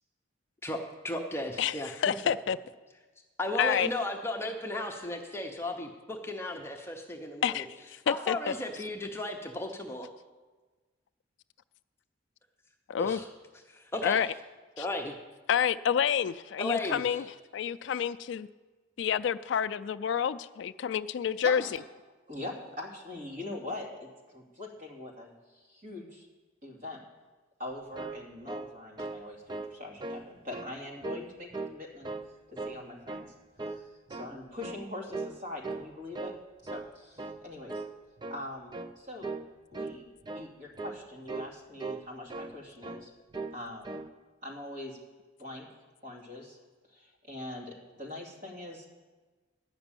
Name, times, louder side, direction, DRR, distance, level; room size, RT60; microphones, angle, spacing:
voice 1, 1.0-1.9 3.4-7.6 8.1-10.0 13.0-13.3 13.7-14.2 14.8-15.1 16.6-17.2, left 2 dB, 10° left, 1 dB, 0.8 m, -35 dB
voice 2, 2.0-2.6 3.6-3.9 7.4-7.6 8.1-8.4 12.9-13.2 14.0-14.3 14.8-14.9 15.5-17.2 17.5-18.5 19.0-21.6, left 8 dB, 60° left, 12 dB, 0.3 m, -28 dB
voice 3, 21.4-21.8 22.3-26.3 26.6-27.0 27.6-32.1 32.5-33.3 33.6-33.8 34.1-36.3 36.6-37.8 38.3-39.3 39.7-43.1 43.5-44.0 44.4-45.0 45.4-45.7 46.0-46.6 46.9-48.9, left 2 dB, 45° right, -3 dB, 2.5 m, -42 dB
sound 1, 27.7-29.2 29.5-29.7 30.0-30.7 31.0-31.8 32.0-32.8 33.1-33.3 33.6-34.4 34.6-34.9 35.1-35.4 35.6-36.4 36.6-36.9 37.2-37.4 37.7-37.9 38.2-38.4 38.7-38.9 39.2-39.5 39.7-40.0 40.2-40.5 40.8-41.0 41.3-41.5 41.8-42.6 42.8-43.0 43.3-43.6 43.8-44.1, right 3 dB, 20° right, 0.4 m, -38 dB
11.0 x 6.0 x 8.9 m, 1.3 s
head